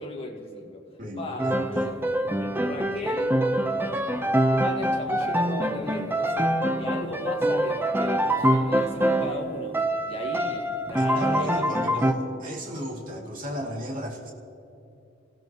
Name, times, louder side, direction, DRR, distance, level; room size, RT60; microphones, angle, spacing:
voice 1, 0.0-2.0 2.4-3.4 4.5-11.7, left 1 dB, 30° left, 0 dB, 1.9 m, -37 dB
voice 2, 1.0-1.9 11.0-14.3, equal, 45° right, -2 dB, 2.5 m, -34 dB
Piano, 1.4-9.4 9.7-12.1, right 1 dB, 10° right, 0.8 m, -25 dB
29.5 x 16.0 x 3.0 m, 2.8 s
head